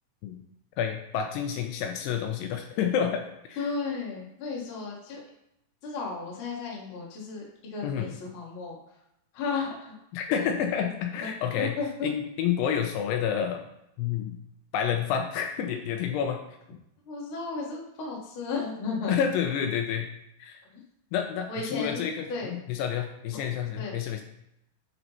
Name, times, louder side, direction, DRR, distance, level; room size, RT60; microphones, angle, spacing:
voice 1, 0.8-3.6 7.8-8.1 10.1-11.7 12.0-13.6 14.0-14.4 14.7-16.4 19.1-20.1 20.4-20.6 21.1-24.2, left 8 dB, 80° left, 4 dB, 2.5 m, -29 dB
voice 2, 3.6-5.2 5.8-8.8 9.3-9.9 10.8-10.9 11.6-12.1 17.0-19.2 21.5-22.5 23.3-23.4 23.8-24.0, left 4 dB, 60° left, -3 dB, 1.3 m, -34 dB
9.7 x 5.6 x 3.0 m, 0.82 s
omnidirectional pair, 5.1 m